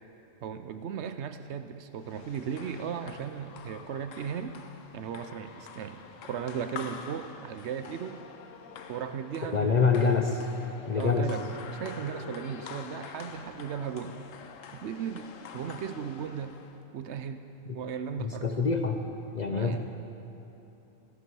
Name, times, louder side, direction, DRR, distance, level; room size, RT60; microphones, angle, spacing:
voice 1, 0.4-4.6 4.9-8.2 8.9-10.1 10.9-11.4 11.7-14.2 14.8-16.5 16.9-17.4 17.7-18.5 19.5-19.8, right 7 dB, 70° right, 9 dB, 0.8 m, -36 dB
sound 1, 2.0-16.8, left 6 dB, 80° left, 1.1 m, -46 dB
voice 2, 9.5-10.4 10.9-11.3 17.7-17.8 18.2-19.0 19.3-19.8, left 5 dB, 45° left, 4 dB, 0.6 m, -26 dB
15.0 x 11.0 x 4.6 m, 3.0 s
omnidirectional pair, 1.3 m